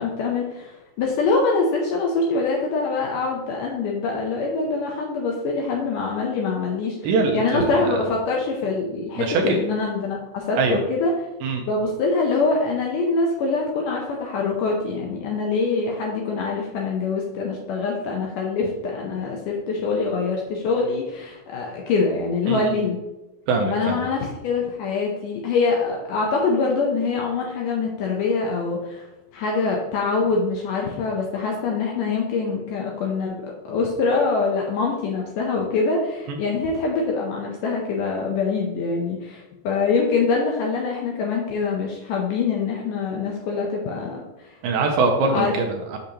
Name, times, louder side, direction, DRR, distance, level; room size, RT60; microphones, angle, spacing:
voice 1, 0.0-7.0 7.3-11.1 11.7-23.0 23.6-29.1 29.3-44.6 45.2-45.5, left 4 dB, 75° left, -1 dB, 1.9 m, -24 dB
voice 2, 7.0-8.1 9.2-9.6 10.6-10.8 11.4-11.6 22.5-22.8 23.5-24.0 36.3-36.4 44.6-46.0, right 3 dB, 80° right, 2 dB, 2.2 m, -23 dB
6.6 x 6.4 x 2.8 m, 1.0 s
omnidirectional pair, 4.5 m